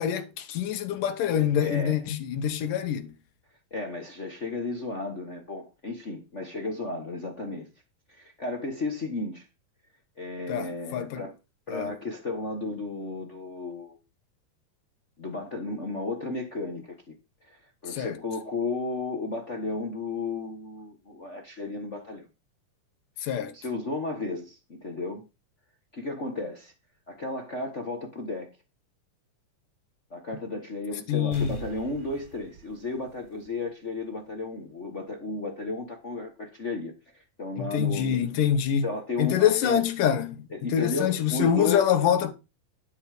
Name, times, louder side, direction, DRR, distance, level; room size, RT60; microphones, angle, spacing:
voice 1, 0.0-3.1 10.5-11.2 11.7-11.9 17.9-18.2 23.2-23.5 31.1-31.6 37.6-38.9 39.2-42.3, left 9 dB, 85° left, 2.8 m, -25 dB
voice 2, 1.4-2.0 3.7-7.7 8.1-9.5 10.2-11.3 11.7-14.0 15.2-17.1 17.4-22.3 23.5-25.2 25.9-26.7 27.1-28.5 30.1-38.3 38.8-39.8 40.5-41.9, left 3 dB, 55° left, 0.8 m, -34 dB
sound 1, 31.3-33.9 34.3-34.4, right 7 dB, 55° right, 4.5 m, -44 dB
11.0 x 6.5 x 5.0 m
omnidirectional pair, 3.7 m